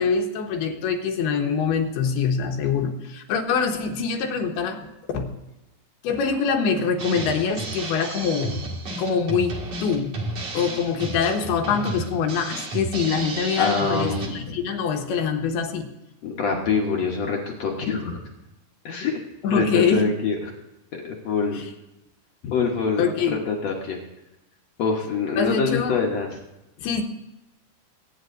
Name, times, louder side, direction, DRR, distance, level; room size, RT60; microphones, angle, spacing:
voice 1, 0.0-4.9 5.1-5.3 6.0-8.6 8.9-9.6 9.8-10.2 10.5-15.9 19.4-20.1 21.5-21.6 23.0-23.4 25.4-26.0 26.8-27.0, left 6 dB, 90° left, 4 dB, 3.2 m, -24 dB
Drum kit, 7.0-14.3, right 2 dB, 50° right, 2.8 m, -32 dB
voice 2, 13.6-14.6 16.2-18.2 18.9-19.2 19.5-20.4 21.0-21.6 22.4-24.0 24.8-26.3, left 5 dB, 65° left, 0 dB, 1.7 m, -25 dB
23.0 x 9.2 x 2.6 m, 0.98 s
omnidirectional pair, 4.4 m